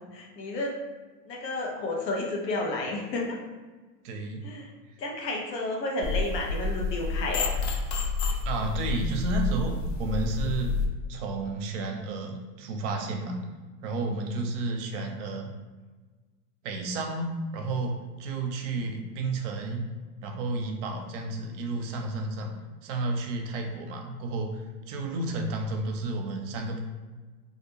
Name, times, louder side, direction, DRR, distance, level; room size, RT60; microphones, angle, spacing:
voice 1, 0.1-0.7 1.3-3.4 4.4-4.7 5.0-7.5, left 2 dB, 85° left, -1 dB, 0.8 m, -31 dB
voice 2, 4.0-4.4 8.4-10.8 11.1-13.4 13.8-15.5 16.6-19.8 20.2-22.5 22.8-24.6 24.9-26.8, right 3 dB, 50° right, 3 dB, 0.6 m, -31 dB
sound 1, 6.0-10.9, left 4 dB, 40° left, 0.4 m, -29 dB
2.4 x 2.1 x 2.9 m, 1.3 s
hypercardioid pair, 100°, 49 cm